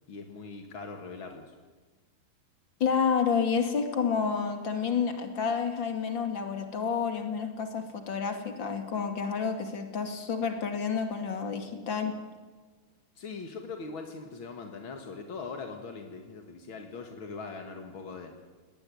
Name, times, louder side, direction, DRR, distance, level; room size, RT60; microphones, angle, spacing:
voice 1, 0.1-1.5 13.1-18.3, left 4 dB, 55° left, 5 dB, 1.4 m, -41 dB
voice 2, 2.8-12.1, left 6 dB, 35° left, 6 dB, 2.2 m, -29 dB
21.0 x 19.0 x 9.5 m, 1.4 s
omnidirectional pair, 5.3 m